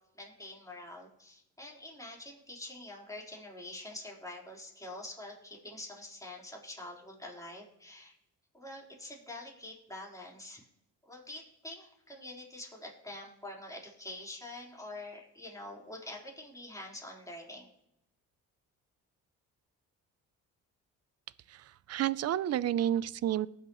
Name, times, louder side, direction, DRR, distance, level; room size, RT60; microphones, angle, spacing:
voice 1, 0.1-8.1 8.5-10.7 11.1-17.7, left 1 dB, 10° left, -3 dB, 4.1 m, -46 dB
voice 2, 21.5-23.5, right 11 dB, 45° right, 18 dB, 0.6 m, -30 dB
19.0 x 6.6 x 3.1 m, 0.83 s
supercardioid pair, 70°, 35 cm